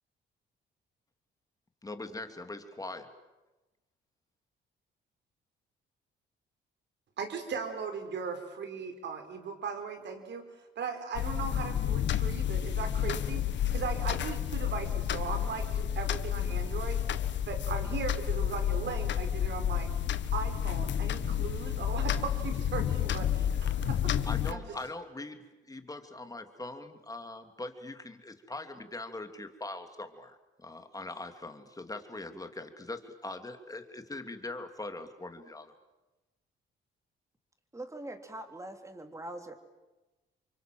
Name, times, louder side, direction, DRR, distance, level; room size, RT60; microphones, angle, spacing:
voice 1, 1.8-3.1 24.3-35.7, left 2 dB, 15° left, 7 dB, 3.0 m, -42 dB
voice 2, 7.2-10.4 10.7-17.0 17.5-19.9 20.3-24.1 24.5-24.6, right 6 dB, 65° right, 7 dB, 5.0 m, -38 dB
sound 1, 11.1-24.5, left 9 dB, 65° left, 1.5 m, -30 dB
voice 3, 37.7-39.5, right 1 dB, 15° right, 6 dB, 3.9 m, -42 dB
29.0 x 24.5 x 7.8 m, 1.1 s
cardioid pair, 90°, 20 cm